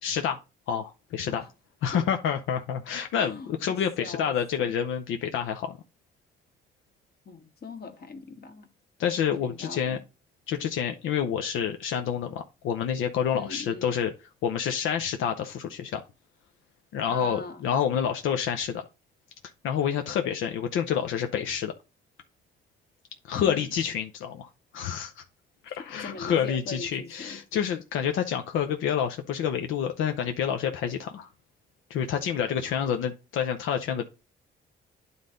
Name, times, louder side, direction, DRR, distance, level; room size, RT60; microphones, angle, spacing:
voice 1, 0.0-0.4 0.7-1.4 1.8-5.8 9.0-10.0 10.5-14.1 14.4-16.0 16.9-18.8 19.6-21.7 23.3-25.2 25.8-31.3 31.9-34.1, left 8 dB, 85° left, 0.7 m, -28 dB
voice 2, 3.2-4.3 4.6-4.7 7.2-8.7 9.4-10.0 13.3-14.0 17.1-17.6 23.4-23.7 25.7-27.4 32.5-32.9, left 3 dB, 50° left, 1.7 m, -41 dB
9.6 x 4.0 x 3.7 m
cardioid pair, 90°, 20 cm